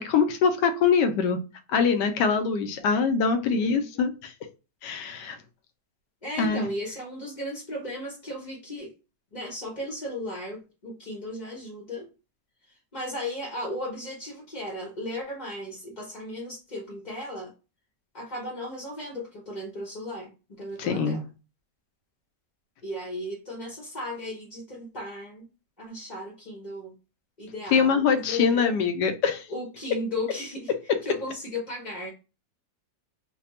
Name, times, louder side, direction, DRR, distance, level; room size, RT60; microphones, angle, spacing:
voice 1, 0.0-1.4 1.7-4.3 4.8-5.4 6.4-6.7 20.8-21.2 27.7-29.5, left 5 dB, 80° left, 8 dB, 1.2 m, -23 dB
voice 2, 3.4-4.1 6.2-8.9 9.3-12.1 12.9-17.5 18.1-20.3 20.6-21.2 22.8-25.4 25.8-26.9 27.4-28.7 29.5-30.7 31.0-32.1, left 1 dB, 35° left, -2 dB, 0.7 m, -35 dB
3.3 x 2.2 x 4.2 m, 0.32 s
omnidirectional pair, 1.9 m